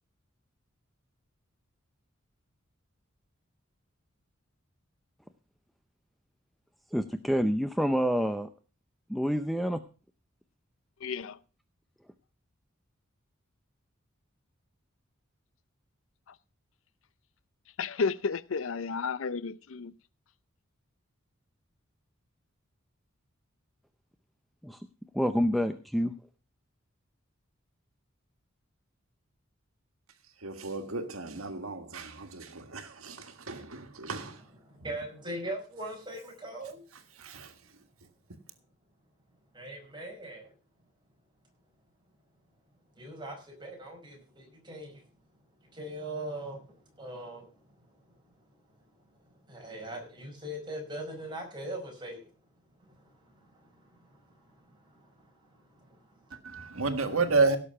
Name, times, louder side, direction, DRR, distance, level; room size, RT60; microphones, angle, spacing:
voice 1, 6.9-8.5 9.1-9.8 24.6-24.8 25.1-26.1, equal, ahead, 0.6 m, -27 dB
voice 2, 11.0-11.4 17.8-19.9, left 5 dB, 70° left, 0.6 m, -32 dB
voice 3, 30.4-34.4 37.2-37.5 56.4-57.6, right 3 dB, 90° right, 1.7 m, -31 dB
voice 4, 34.2-36.8 39.5-40.5 43.0-45.0 45.7-47.6 47.9-48.0 49.3-52.2 52.8-56.3, right 1 dB, 20° right, 5.2 m, -41 dB
17.0 x 6.8 x 5.7 m
head